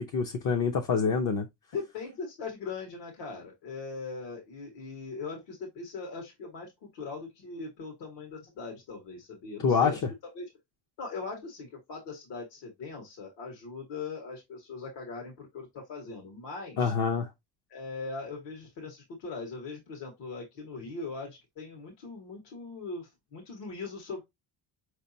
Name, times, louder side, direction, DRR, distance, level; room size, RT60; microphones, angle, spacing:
voice 1, 0.0-1.5 9.6-9.9 16.8-17.3, left 5 dB, 45° left, 0.7 m, -26 dB
voice 2, 1.7-10.0 10.4-10.5 11.0-16.9 17.7-24.2, left 4 dB, 75° left, 1.8 m, -40 dB
5.0 x 3.3 x 2.7 m
cardioid pair, 130°, 43 cm